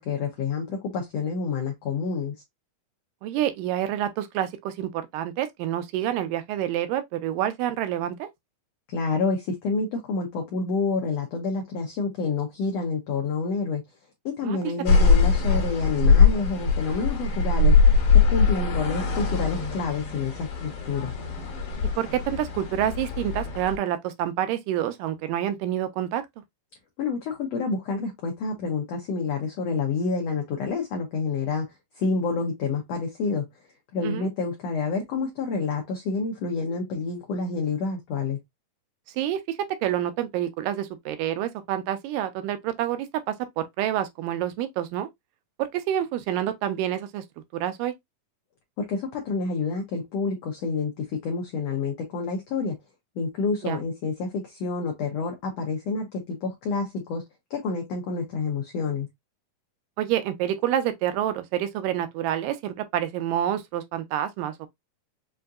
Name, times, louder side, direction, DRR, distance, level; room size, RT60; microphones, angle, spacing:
voice 1, 0.0-2.3 8.9-13.8 14.2-17.8 18.1-21.1 27.0-33.5 33.9-38.4 48.8-52.7 53.2-57.2 57.5-59.1, left 4 dB, 80° left, 1.4 m, -28 dB
voice 2, 3.2-8.3 14.4-14.6 22.0-26.2 34.0-34.3 39.2-45.1 45.6-47.2 47.6-47.9 53.6-53.8 60.0-64.7, right 11 dB, 85° right, 2.3 m, -28 dB
sound 1, 14.9-23.8, left 4 dB, 55° left, 1.9 m, -22 dB
5.5 x 2.6 x 2.3 m
omnidirectional pair, 3.9 m